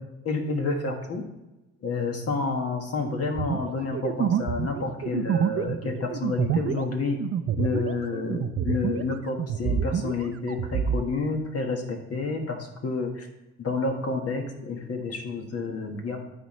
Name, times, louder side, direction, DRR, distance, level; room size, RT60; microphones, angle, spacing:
voice 1, 0.2-1.2 1.8-7.2 7.6-13.3 13.6-16.2, left 3 dB, 50° left, 3 dB, 1.4 m, -29 dB
sound 1, 3.4-9.1 9.4-11.0, right 8 dB, 50° right, 0.5 m, -27 dB
12.0 x 4.3 x 3.1 m, 0.99 s
cardioid pair, 90°, 30 cm